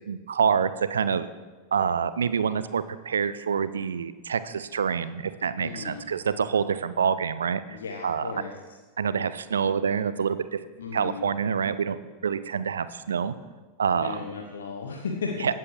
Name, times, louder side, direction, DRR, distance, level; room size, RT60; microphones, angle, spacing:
voice 1, 0.1-1.3 1.7-7.8 8.0-8.3 9.0-10.6 10.9-13.3 13.8-14.2 15.4-15.5, right 6 dB, 70° right, 14 dB, 0.4 m, -26 dB
voice 2, 5.6-6.0 7.7-8.5 10.8-11.3 13.9-15.3, left 5 dB, 65° left, 2 dB, 1.0 m, -35 dB
17.5 x 7.6 x 3.3 m, 1.4 s
figure-of-eight pair, 90°, 0 cm